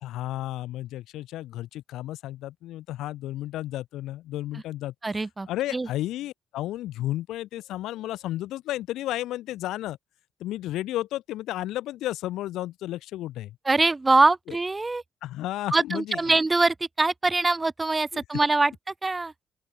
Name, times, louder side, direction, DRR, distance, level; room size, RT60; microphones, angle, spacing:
voice 1, 0.0-4.9 5.5-10.0 10.4-13.6 14.5-14.6 15.2-16.4 18.1-18.2, left 14 dB, 90° left, 3.6 m, -33 dB
voice 2, 5.0-5.9 13.7-15.0 15.7-18.7 19.0-19.3, right 3 dB, 25° right, 1.8 m, -23 dB
open air
cardioid pair, 80°, 0 cm